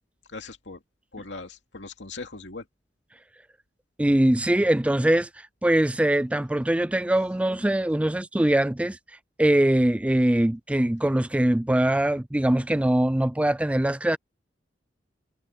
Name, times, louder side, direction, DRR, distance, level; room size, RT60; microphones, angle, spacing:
voice 1, 0.3-0.8 1.1-2.7, left 3 dB, 65° left, 2.7 m, -39 dB
voice 2, 4.0-9.0 9.4-14.2, right 1 dB, 5° right, 0.3 m, -22 dB
head